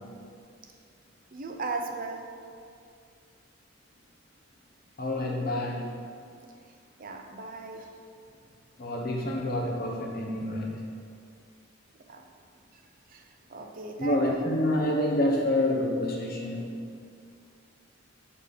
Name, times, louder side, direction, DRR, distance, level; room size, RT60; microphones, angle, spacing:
voice 1, 1.3-2.3 7.0-7.9 12.1-12.2 13.1-14.4, right 3 dB, 45° right, 3 dB, 0.6 m, -37 dB
voice 2, 5.0-6.0 8.8-10.7 14.0-16.8, left 1 dB, 50° left, 0 dB, 1.0 m, -28 dB
6.6 x 4.3 x 5.3 m, 2.3 s
head